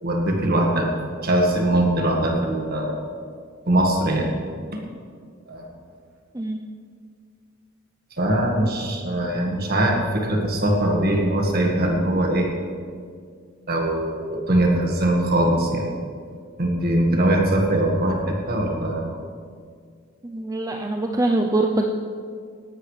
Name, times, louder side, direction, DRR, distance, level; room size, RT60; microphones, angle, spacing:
voice 1, 0.0-0.9 1.2-3.1 3.7-4.3 5.5-5.6 8.2-12.5 13.7-15.9 16.6-18.2 18.5-19.1, right 1 dB, 50° right, 1 dB, 1.7 m, -21 dB
voice 2, 20.2-21.9, right 2 dB, 15° right, 2 dB, 0.6 m, -23 dB
18.0 x 12.0 x 3.3 m, 2.1 s
head